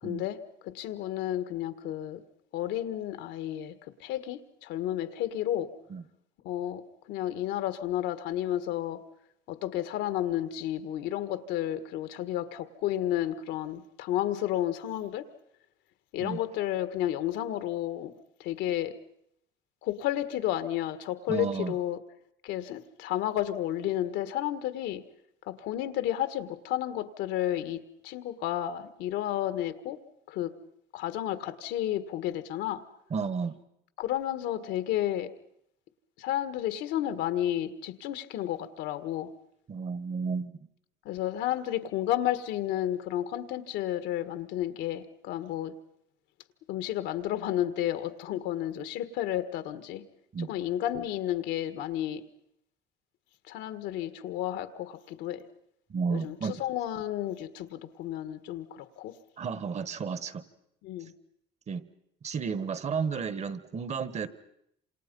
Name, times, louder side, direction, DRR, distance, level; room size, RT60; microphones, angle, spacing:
voice 1, 0.0-2.2 2.5-5.7 6.4-6.8 7.1-9.0 9.5-15.3 16.1-18.1 18.4-18.9 19.8-22.0 22.4-25.0 25.5-30.0 30.3-30.6 30.9-32.8 34.0-35.3 36.2-39.3 41.0-45.7 46.7-50.0 50.4-52.2 53.5-55.4 56.1-59.1 60.8-61.1, left 12 dB, 80° left, 11 dB, 1.6 m, -32 dB
voice 2, 21.3-21.8 33.1-33.6 39.7-40.5 50.3-50.5 55.9-56.6 59.4-60.4 61.7-61.9 62.2-64.3, right 5 dB, 40° right, 14 dB, 1.5 m, -32 dB
27.5 x 27.5 x 5.4 m, 0.75 s
cardioid pair, 110°, 18 cm